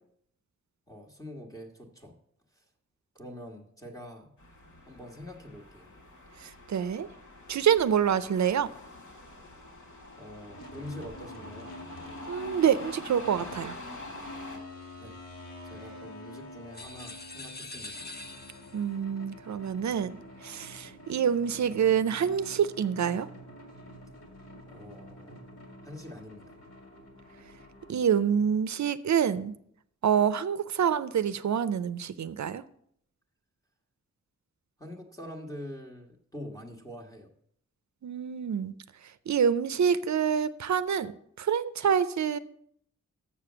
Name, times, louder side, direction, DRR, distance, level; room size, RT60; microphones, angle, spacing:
voice 1, 0.9-2.1 2.5-2.6 3.1-4.3 4.9-5.9 10.2-11.8 15.0-15.2 15.6-18.0 24.7-25.5 25.8-26.6 34.8-37.3, left 1 dB, 10° left, 1.3 m, -45 dB
sound 1, 4.4-14.6, left 2 dB, 75° left, 2.2 m, -46 dB
voice 2, 6.4-7.1 7.5-8.7 12.3-13.7 18.7-20.2 20.4-23.3 27.9-29.5 30.0-32.6 38.0-38.7 39.3-41.1 41.4-42.4, right 8 dB, 70° right, 0.6 m, -26 dB
sound 2, 10.5-28.4, left 1 dB, 60° left, 2.2 m, -47 dB
sound 3, 16.7-18.9, left 2 dB, 35° left, 0.9 m, -43 dB
7.3 x 6.8 x 7.2 m
wide cardioid pair, 125°, 30 cm